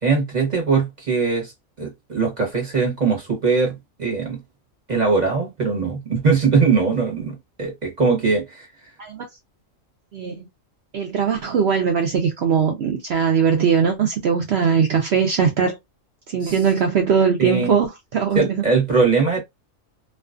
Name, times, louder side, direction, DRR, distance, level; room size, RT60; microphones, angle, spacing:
voice 1, 0.0-1.5 1.8-4.4 4.9-8.7 16.4-16.5 17.4-17.7 18.3-19.4, right 4 dB, 35° right, 0.9 m, -21 dB
voice 2, 10.1-10.5 10.9-15.8 16.3-18.7, right 6 dB, 65° right, 0.7 m, -20 dB
2.4 x 2.3 x 2.4 m
omnidirectional pair, 1.4 m